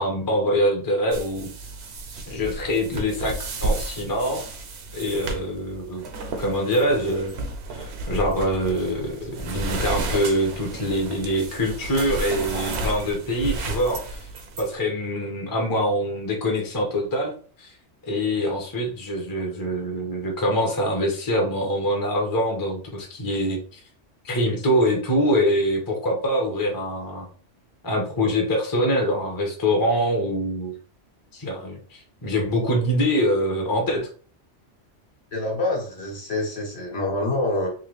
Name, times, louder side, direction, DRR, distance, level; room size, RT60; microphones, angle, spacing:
voice 1, 0.0-1.5 2.3-4.4 4.9-6.0 6.4-7.3 7.7-14.3 14.6-17.3 17.6-17.7 18.1-23.8 24.2-27.3 27.8-30.7 31.3-34.1, equal, 20° left, 1 dB, 0.7 m, -24 dB
sound 1, 1.1-14.7, right 2 dB, 65° right, 0.9 m, -32 dB
voice 2, 35.3-37.7, left 2 dB, 60° left, -1 dB, 1.5 m, -26 dB
3.7 x 2.8 x 3.1 m, 0.42 s
omnidirectional pair, 1.2 m